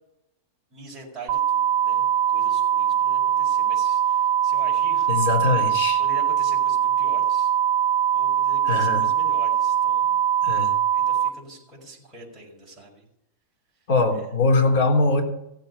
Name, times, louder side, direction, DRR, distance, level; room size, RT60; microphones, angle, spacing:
voice 1, 0.7-5.1 6.0-7.5 8.1-10.3 10.9-13.1 14.1-14.3, right 2 dB, ahead, -8 dB, 5.6 m, -43 dB
sound 1, 1.3-11.3, right 10 dB, 30° right, 1.0 m, -22 dB
voice 2, 5.1-6.0 8.7-9.0 10.4-10.7 13.9-15.2, left 3 dB, 55° left, 3 dB, 3.4 m, -21 dB
16.0 x 7.9 x 8.1 m, 0.84 s
supercardioid pair, 165°, 0 cm